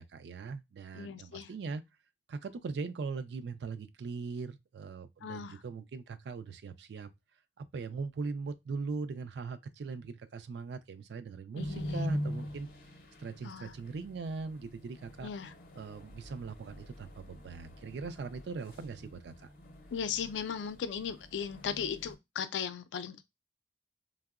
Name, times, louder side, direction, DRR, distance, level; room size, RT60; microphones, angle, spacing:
voice 1, 0.0-1.8 2.3-7.1 7.6-12.7 13.2-15.3 15.8-19.5, right 4 dB, 65° right, 0.3 m, -40 dB
voice 2, 0.9-1.5 5.2-5.6 11.6-12.0 13.4-13.7 15.2-15.5 19.9-23.3, left 7 dB, 85° left, 0.4 m, -37 dB
sound 1, 11.5-22.1, equal, 55° left, 0.7 m, -43 dB
3.5 x 2.0 x 2.3 m
head